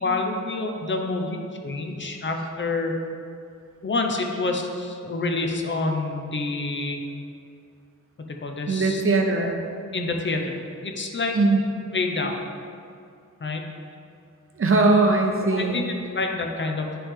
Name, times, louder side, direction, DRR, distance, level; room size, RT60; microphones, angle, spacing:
voice 1, 0.0-1.4 1.6-2.9 3.8-7.0 8.2-9.0 9.3-9.5 9.9-11.4 11.9-12.4 13.4-13.6 15.4-17.0, left 3 dB, 35° left, 3 dB, 0.6 m, -28 dB
voice 2, 8.7-9.6 11.3-11.6 14.6-15.8, right 3 dB, 45° right, 2 dB, 0.7 m, -20 dB
9.8 x 3.4 x 3.6 m, 2.4 s
wide cardioid pair, 140°, 32 cm